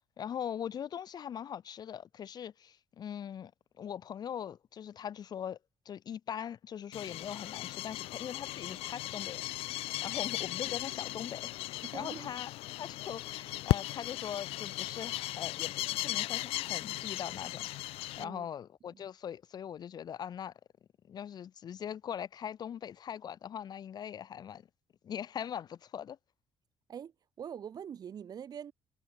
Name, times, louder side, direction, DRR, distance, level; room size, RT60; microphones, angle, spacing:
voice 1, 0.2-3.5 3.8-5.6 5.8-12.5 12.8-20.5 21.1-24.6 25.0-26.2, left 9 dB, 45° left, 2.7 m, -41 dB
sound 1, 6.9-18.2, left 18 dB, 80° left, 0.4 m, -37 dB
voice 2, 11.8-12.3 18.2-18.5 18.9-19.0 26.9-27.1 27.4-28.7, right 8 dB, 40° right, 4.6 m, -43 dB
cardioid pair, 150°, 10 cm